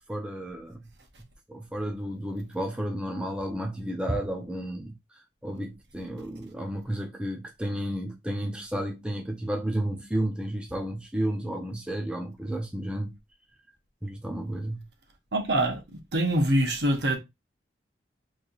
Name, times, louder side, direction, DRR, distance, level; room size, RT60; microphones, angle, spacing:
voice 1, 0.1-0.9 1.5-13.1 14.0-14.9, right 1 dB, 5° right, 0.5 m, -32 dB
voice 2, 15.3-17.2, right 1 dB, 70° right, 1.0 m, -25 dB
3.1 x 2.8 x 3.8 m
head